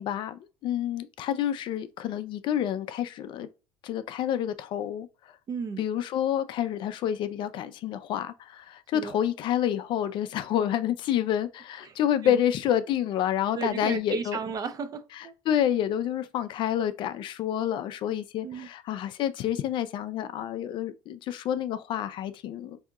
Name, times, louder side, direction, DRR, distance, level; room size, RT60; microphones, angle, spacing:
voice 1, 0.0-3.5 3.8-5.1 5.8-14.4 15.5-22.8, left 10 dB, 50° left, 0.3 m, -28 dB
voice 2, 5.5-5.9 8.9-9.2 11.8-12.0 12.2-12.4 13.5-15.3 18.4-18.7, right 5 dB, 35° right, 0.5 m, -34 dB
3.5 x 2.7 x 2.3 m
supercardioid pair, 90°, 10 cm